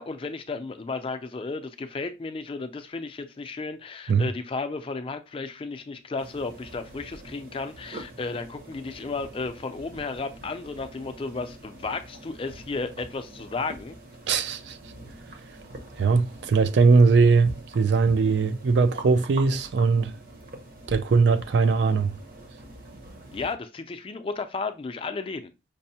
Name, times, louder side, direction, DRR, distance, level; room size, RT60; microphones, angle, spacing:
voice 1, 0.0-14.0 23.3-25.5, left 3 dB, 30° left, 0.4 m, -33 dB
sound 1, 6.2-23.5, right 1 dB, 50° right, 0.8 m, -44 dB
voice 2, 14.3-14.8 16.0-20.1 20.9-22.1, right 4 dB, 70° right, 0.4 m, -20 dB
5.2 x 2.0 x 2.7 m
head